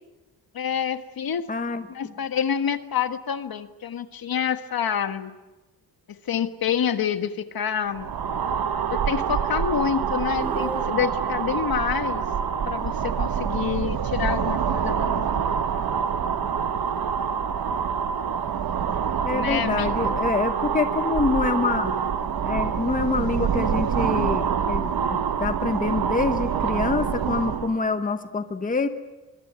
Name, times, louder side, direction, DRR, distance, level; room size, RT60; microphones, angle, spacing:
voice 1, 0.5-1.5 1.9-5.3 6.1-8.1 8.9-12.2 12.7-15.3 19.3-20.1, left 8 dB, 60° left, 10 dB, 1.5 m, -27 dB
voice 2, 1.5-1.9 19.2-22.0 22.4-28.9, left 4 dB, 20° left, 9 dB, 1.0 m, -26 dB
sound 1, 7.9-27.8, right 7 dB, 65° right, 1.3 m, -26 dB
sound 2, 10.4-11.4, right 2 dB, 5° right, 1.1 m, -35 dB
24.0 x 23.5 x 9.6 m, 1.1 s
wide cardioid pair, 175°, 39 cm